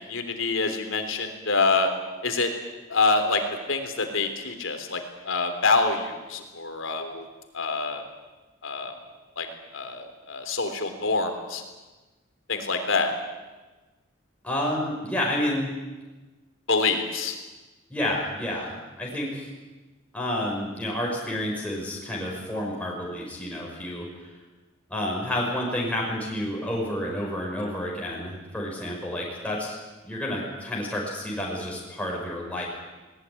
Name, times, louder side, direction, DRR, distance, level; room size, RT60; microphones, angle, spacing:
voice 1, 0.1-1.9 2.2-2.5 2.9-3.4 3.7-7.2 7.5-8.0 8.6-8.9 9.4-9.5 9.7-11.6 12.5-13.1 16.7-17.4, left 3 dB, 85° left, 6 dB, 3.4 m, -26 dB
voice 2, 14.4-15.7 17.9-19.5 20.1-24.1 24.9-29.8 30.0-32.7, left 1 dB, 5° left, -3 dB, 5.6 m, -30 dB
20.0 x 19.5 x 9.7 m, 1.2 s
head